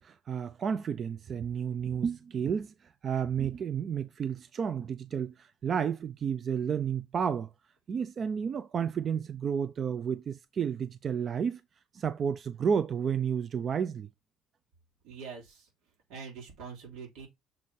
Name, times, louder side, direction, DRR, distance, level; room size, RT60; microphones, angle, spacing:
voice 1, 0.0-2.7 3.0-7.5 7.9-11.6 11.9-14.1, right 7 dB, 40° right, 0.4 m, -31 dB
voice 2, 15.0-15.7 16.1-17.3, right 5 dB, 85° right, 3.2 m, -44 dB
6.5 x 3.7 x 4.2 m
cardioid pair, 125°, 0 cm